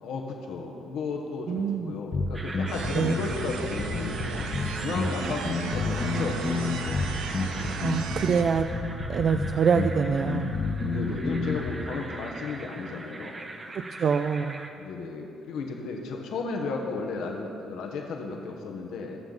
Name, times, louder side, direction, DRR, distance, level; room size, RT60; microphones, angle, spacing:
voice 1, 0.0-4.2 4.8-7.2 10.9-13.4 14.8-19.2, left 3 dB, 75° left, 1 dB, 1.2 m, -34 dB
voice 2, 1.5-1.9 2.9-3.1 7.8-8.7 9.1-10.5 13.7-14.6, right 6 dB, 45° right, 7 dB, 0.4 m, -25 dB
sound 1, 2.1-11.7, left 3 dB, 40° left, 1.1 m, -30 dB
sound 2, 2.3-14.7, right 2 dB, 25° right, 1.0 m, -41 dB
sound 3, 2.7-8.4, right 5 dB, 90° right, 0.9 m, -36 dB
20.0 x 7.1 x 4.0 m, 2.8 s
cardioid pair, 105°, 0 cm